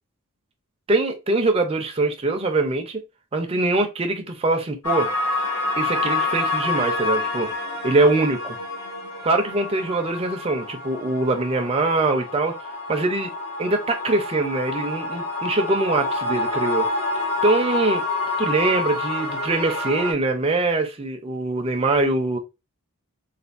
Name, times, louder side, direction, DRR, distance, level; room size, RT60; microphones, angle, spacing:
voice 1, 0.9-3.0 3.3-5.1 5.8-8.6 9.2-12.6 12.9-13.3 13.6-16.9 17.4-18.0 18.4-22.4, right 2 dB, 25° right, 0.5 m, -23 dB
sound 1, 4.8-20.1, left 3 dB, 80° left, 1.2 m, -27 dB
3.3 x 2.3 x 2.4 m
head